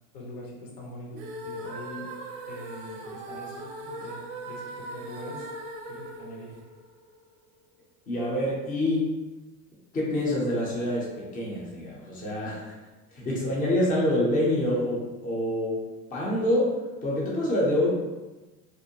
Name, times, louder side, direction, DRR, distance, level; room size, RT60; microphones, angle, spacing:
voice 1, 0.1-2.1 2.5-5.5 5.9-6.6, left 1 dB, 70° left, -3 dB, 1.0 m, -43 dB
sound 1, 1.1-7.3, right 1 dB, 50° right, 0.5 m, -39 dB
voice 2, 8.1-9.1 9.9-12.7 13.1-17.9, left 1 dB, 20° left, -5 dB, 0.6 m, -26 dB
2.6 x 2.0 x 2.8 m, 1.2 s
supercardioid pair, 110°, 48 cm